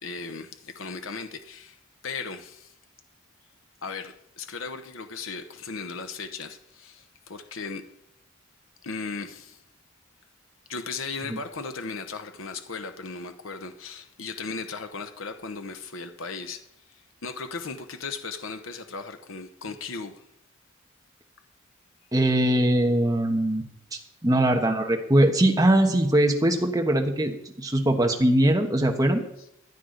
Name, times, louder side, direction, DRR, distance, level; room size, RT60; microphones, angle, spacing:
voice 1, 0.0-2.7 3.8-7.8 8.8-9.6 10.7-16.6 17.2-20.2, left 4 dB, 75° left, 0.9 m, -36 dB
voice 2, 22.1-23.6 23.9-29.2, right 1 dB, 20° right, 1.2 m, -21 dB
14.5 x 9.6 x 3.9 m
head